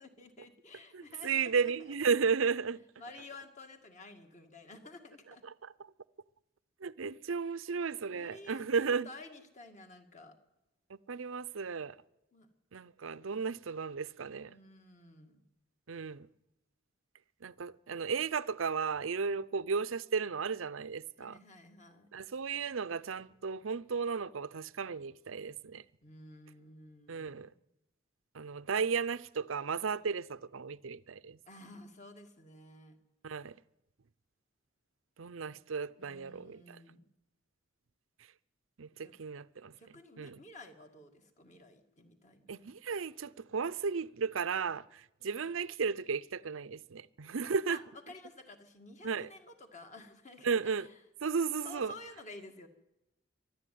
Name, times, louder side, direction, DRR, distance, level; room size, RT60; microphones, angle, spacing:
voice 1, 0.0-1.7 3.0-5.4 8.1-10.3 12.3-12.5 14.5-15.4 21.2-22.1 26.0-27.6 31.5-33.0 36.0-37.0 39.0-39.1 39.8-42.7 47.7-47.8 48.1-50.9 51.6-52.7, left 2 dB, 35° left, 2.1 m, -52 dB
voice 2, 0.9-2.8 5.4-5.5 6.8-9.1 10.9-12.0 12.7-14.5 15.9-16.3 17.4-21.4 22.1-25.8 27.1-27.5 28.3-31.4 33.2-33.6 35.2-36.8 38.8-39.7 40.2-40.4 42.5-47.8 49.0-49.3 50.4-50.9 51.2-51.9, right 5 dB, 80° right, 0.6 m, -34 dB
24.0 x 12.0 x 9.4 m
head